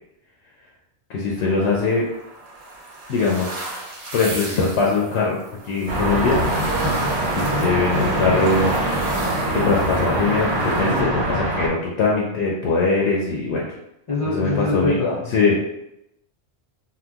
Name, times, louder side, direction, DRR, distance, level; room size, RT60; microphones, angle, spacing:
voice 1, 1.1-2.1 3.1-3.9 4.1-5.4 5.6-6.4 7.3-8.7 9.5-13.7 14.3-15.0 15.3-15.6, left 4 dB, 75° left, -3 dB, 0.9 m, -21 dB
sound 1, 1.4-11.0, right 2 dB, 40° right, 0.7 m, -36 dB
sound 2, 5.9-11.7, right 1 dB, 85° right, 1.2 m, -23 dB
voice 2, 14.1-15.6, left 3 dB, 45° left, -6 dB, 0.4 m, -24 dB
2.8 x 2.2 x 3.4 m, 0.84 s
omnidirectional pair, 1.2 m